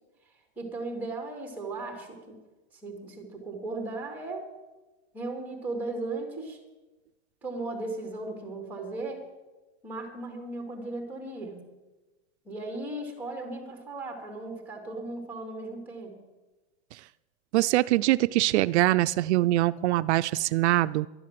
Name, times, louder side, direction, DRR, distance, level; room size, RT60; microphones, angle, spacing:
voice 1, 0.6-2.4 2.8-4.5 5.1-6.6 7.4-9.2 9.8-11.6 12.4-16.2, right 2 dB, 5° right, 2 dB, 2.8 m, -36 dB
voice 2, 17.5-21.1, right 16 dB, 85° right, 14 dB, 0.5 m, -23 dB
12.0 x 11.0 x 7.5 m, 1.1 s
supercardioid pair, 155°, 33 cm